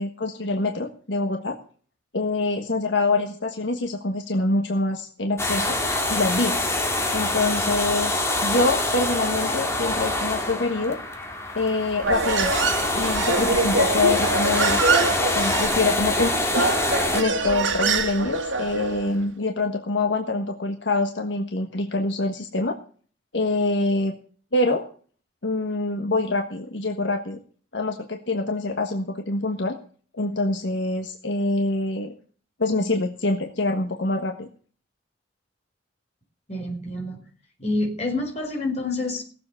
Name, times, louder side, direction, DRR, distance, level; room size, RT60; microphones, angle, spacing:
voice 1, 0.0-1.6 2.1-5.8 6.1-6.7 7.1-11.0 11.5-12.7 12.9-14.8 15.3-16.7 17.1-22.8 23.3-24.1 24.5-24.9 25.4-27.4 27.7-29.8 30.2-32.1 32.6-34.5, left 2 dB, 70° left, 4 dB, 1.5 m, -25 dB
sound 1, 5.4-17.2, left 2 dB, 15° left, 2.1 m, -25 dB
Human voice, 12.0-19.1, right 4 dB, 80° right, 1.6 m, -25 dB
voice 2, 36.5-37.2 37.6-39.3, left 2 dB, 35° left, 2 dB, 4.7 m, -27 dB
18.0 x 7.7 x 7.1 m, 0.44 s
head